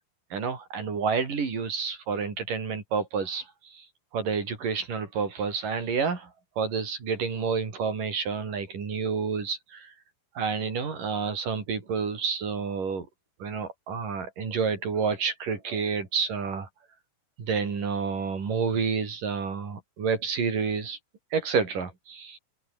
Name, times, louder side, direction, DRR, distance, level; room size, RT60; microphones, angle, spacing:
voice 1, 0.3-3.5 3.7-3.9 4.1-6.3 6.6-9.9 10.4-13.1 13.4-16.7 17.4-21.0 21.3-22.4, right 5 dB, 60° right, 6.3 m, -29 dB
omnidirectional pair, 4.4 m